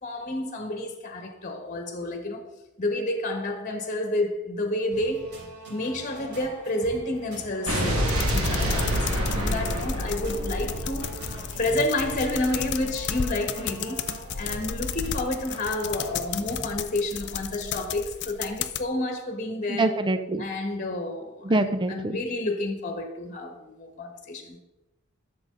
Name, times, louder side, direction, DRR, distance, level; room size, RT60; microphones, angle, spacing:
voice 1, 0.0-2.4 2.8-5.3 5.7-14.0 14.3-19.9 20.4-24.6, left 1 dB, 40° left, 1.4 m, -30 dB
sound 1, 4.9-16.8, right 2 dB, 60° right, 3.8 m, -42 dB
Explosion, 7.7-12.0, equal, 90° right, 2.0 m, -27 dB
sound 2, 8.1-18.8, left 7 dB, 55° left, 0.5 m, -34 dB
voice 2, 19.7-20.5 21.4-22.2, right 2 dB, 25° right, 0.6 m, -25 dB
12.5 x 6.3 x 3.9 m
head